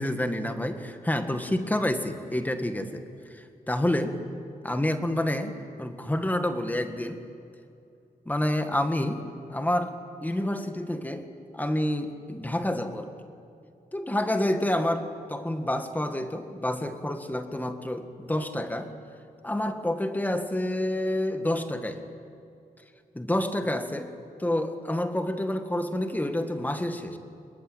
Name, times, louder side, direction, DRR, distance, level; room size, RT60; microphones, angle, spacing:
voice 1, 0.0-3.0 3.3-4.2 4.6-5.5 5.8-7.2 8.3-9.2 9.5-11.3 11.5-13.1 13.9-18.9 19.4-22.1 23.1-24.1 24.4-27.2, left 1 dB, 10° left, 7 dB, 1.8 m, -28 dB
27.0 x 22.0 x 9.3 m, 2.6 s
wide cardioid pair, 165°, 16 cm